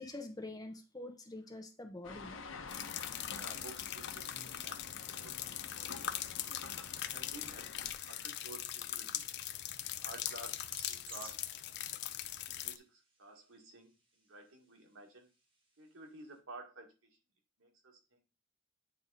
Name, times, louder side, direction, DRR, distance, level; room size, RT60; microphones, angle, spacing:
voice 1, 0.0-2.4, left 2 dB, 20° left, 1.0 m, -46 dB
sound 1, 2.0-7.9, left 4 dB, 80° left, 0.9 m, -49 dB
sound 2, 2.7-12.8, left 11 dB, 55° left, 0.5 m, -41 dB
voice 2, 3.3-6.1 7.0-9.3 9.8-11.5 12.5-15.3 15.8-17.2 17.6-18.4, right 2 dB, 85° right, 1.9 m, -53 dB
sound 3, 7.4-16.4, right 2 dB, 25° right, 1.8 m, -60 dB
9.0 x 3.6 x 4.1 m
head